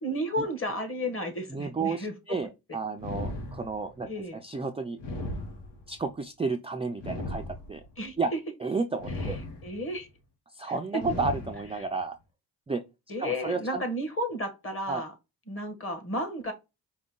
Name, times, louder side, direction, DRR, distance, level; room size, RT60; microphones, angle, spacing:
voice 1, 0.0-2.4 4.1-4.4 8.0-8.2 9.6-10.1 10.6-11.0 13.1-15.1 15.5-16.5, equal, 30° left, 1.4 m, -33 dB
voice 2, 1.5-5.0 5.9-7.9 8.2-8.3 8.6-9.4 10.5-12.2 12.7-12.8 13.2-13.8 14.9-15.0, right 4 dB, 15° right, 0.3 m, -32 dB
sound 1, 3.0-4.0 5.0-6.1 7.0-8.0 9.0-10.0 11.0-12.0, left 1 dB, 85° left, 1.1 m, -37 dB
5.1 x 2.2 x 3.6 m
cardioid pair, 115°, 40 cm